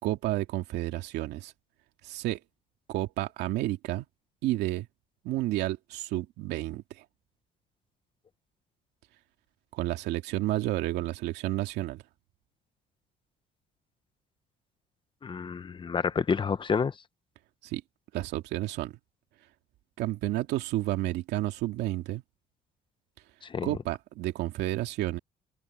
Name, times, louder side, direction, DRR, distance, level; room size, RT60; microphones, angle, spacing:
voice 1, 0.0-1.5 2.0-2.4 2.9-4.1 4.4-4.9 5.2-7.0 9.7-12.0 17.6-17.8 18.1-18.9 20.0-22.2 23.6-25.2, right 16 dB, 85° right, 2.5 m, -31 dB
voice 2, 15.2-16.9 23.4-23.7, left 6 dB, 30° left, 1.1 m, -29 dB
cardioid pair, 110°, 17 cm